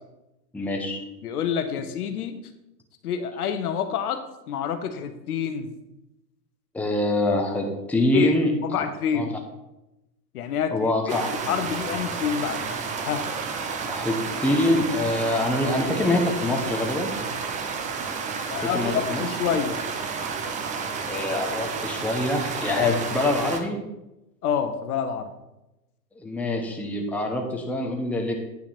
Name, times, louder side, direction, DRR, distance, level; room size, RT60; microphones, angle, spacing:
voice 1, 0.5-1.0 6.7-8.5 9.1-9.3 10.7-11.3 13.9-17.1 18.6-19.2 21.1-23.8 26.2-28.3, left 2 dB, 5° left, 1 dB, 0.9 m, -25 dB
voice 2, 1.2-2.4 3.0-5.7 8.1-9.4 10.3-10.7 11.1-12.6 13.0-13.2 18.5-18.9 19.2-19.8 22.8-23.0 24.4-25.3, left 7 dB, 65° left, 8 dB, 1.1 m, -27 dB
sound 1, 11.1-23.6, right 5 dB, 15° right, 0.5 m, -31 dB
9.2 x 5.7 x 4.3 m, 0.94 s
hypercardioid pair, 110°, 49 cm